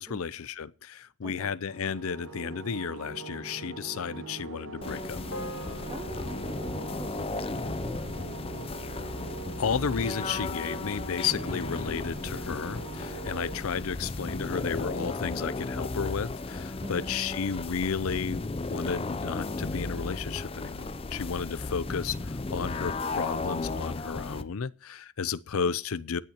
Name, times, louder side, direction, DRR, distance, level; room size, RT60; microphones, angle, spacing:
voice 1, 0.0-5.2 9.6-26.2, left 6 dB, 80° left, 0.5 m, -33 dB
sound 1, 1.7-13.6, right 3 dB, 80° right, 4.9 m, -42 dB
sound 2, 4.8-24.4, left 3 dB, 25° left, 0.5 m, -35 dB
sound 3, 5.3-9.8, left 1 dB, 65° left, 3.8 m, -47 dB
voice 2, 5.9-8.0 13.9-14.0 16.8-17.1, right 1 dB, 20° right, 0.7 m, -45 dB
18.5 x 9.4 x 2.9 m
head